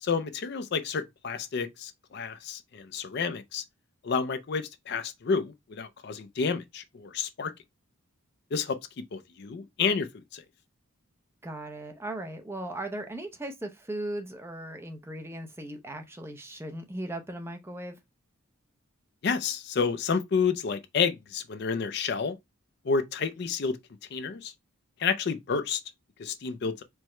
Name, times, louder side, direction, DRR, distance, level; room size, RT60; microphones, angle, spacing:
voice 1, 0.0-3.6 4.0-7.5 8.5-10.4 19.2-22.4 22.8-23.8 24.1-24.5 25.0-25.8 26.2-26.8, left 5 dB, 50° left, 0.4 m, -30 dB
voice 2, 11.4-17.9, right 1 dB, 10° right, 0.6 m, -37 dB
4.6 x 2.1 x 4.2 m
head